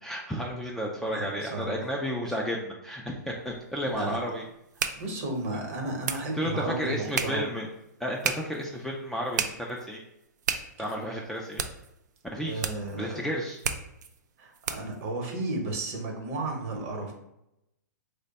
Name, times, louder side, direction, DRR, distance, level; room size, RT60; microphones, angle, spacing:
voice 1, 0.0-4.4 6.3-7.7 8.0-10.0 10.8-11.6 12.3-12.7 13.0-13.6, equal, 5° left, -3 dB, 0.3 m, -32 dB
voice 2, 1.0-1.9 3.8-4.2 5.0-7.5 10.8-10.9 12.4-13.2 14.4-17.1, right 2 dB, 45° right, 1 dB, 0.9 m, -33 dB
sound 1, 3.4-15.0, right 7 dB, 70° right, 0.4 m, -36 dB
3.2 x 2.1 x 3.9 m, 0.84 s
hypercardioid pair, 130°, 10 cm